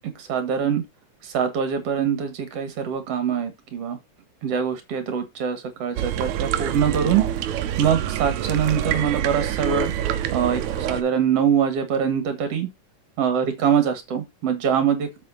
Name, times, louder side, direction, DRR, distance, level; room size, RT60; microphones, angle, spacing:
voice 1, 0.2-0.8 1.2-4.0 4.4-7.3 7.8-9.9 10.3-12.7 13.2-15.3, right 8 dB, 60° right, 2.7 m, -23 dB
sound 1, 6.0-11.0, right 11 dB, 80° right, 2.1 m, -26 dB
7.7 x 6.5 x 4.2 m
omnidirectional pair, 3.3 m